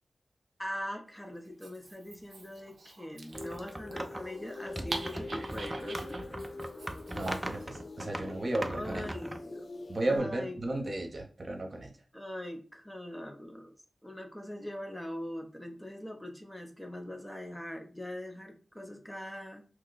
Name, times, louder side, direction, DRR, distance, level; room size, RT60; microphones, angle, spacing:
voice 1, 0.6-6.2 8.7-9.7 10.0-10.6 12.1-13.7 14.0-19.7, left 1 dB, 10° left, 3 dB, 0.7 m, -42 dB
Dog, 1.4-7.7, right 3 dB, 80° right, 0.5 m, -45 dB
sound 1, 3.3-10.2, left 3 dB, 65° left, 0.5 m, -44 dB
sound 2, 3.3-4.3 4.7-9.4, right 1 dB, 25° right, 0.4 m, -40 dB
voice 2, 7.1-9.1 9.9-11.9, right 1 dB, 55° right, 2 dB, 0.8 m, -34 dB
3.0 x 2.2 x 3.9 m, 0.38 s
cardioid pair, 45°, 0 cm